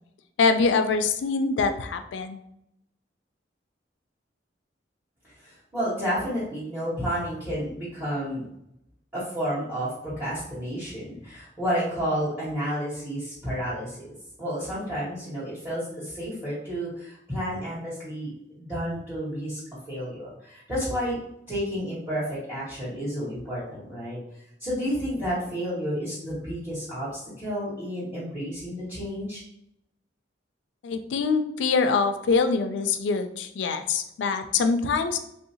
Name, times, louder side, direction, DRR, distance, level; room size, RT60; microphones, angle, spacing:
voice 1, 0.4-2.4 30.8-35.2, left 4 dB, 70° left, 8 dB, 0.4 m, -24 dB
voice 2, 5.4-8.5 9.1-14.1 14.4-19.6 19.9-21.2 21.5-24.2 24.6-29.4, equal, 10° right, -11 dB, 1.2 m, -31 dB
3.3 x 2.7 x 2.8 m, 0.77 s
head